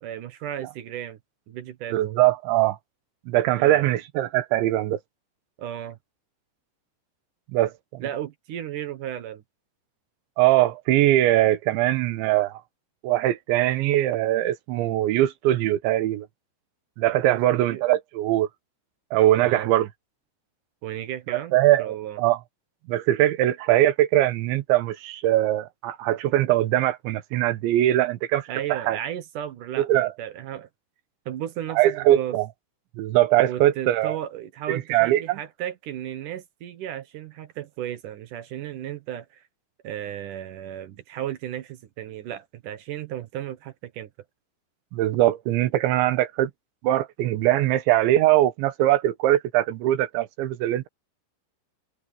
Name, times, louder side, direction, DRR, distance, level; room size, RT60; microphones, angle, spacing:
voice 1, 0.0-1.2 1.5-2.2 3.5-3.9 5.6-6.0 8.0-9.4 17.2-17.9 19.4-19.7 20.8-22.2 28.5-30.7 31.3-32.4 33.4-39.4 39.8-44.1, right 11 dB, 65° right, 2.1 m, -34 dB
voice 2, 1.9-2.8 3.3-5.0 7.5-8.0 10.4-12.6 13.0-16.3 17.0-18.5 19.1-19.9 21.3-22.4 22.9-29.0 29.8-30.1 31.8-32.5 33.0-34.2 34.9-35.4 44.9-46.5 46.8-50.9, right 14 dB, 90° right, 3.5 m, -21 dB
open air
omnidirectional pair, 5.1 m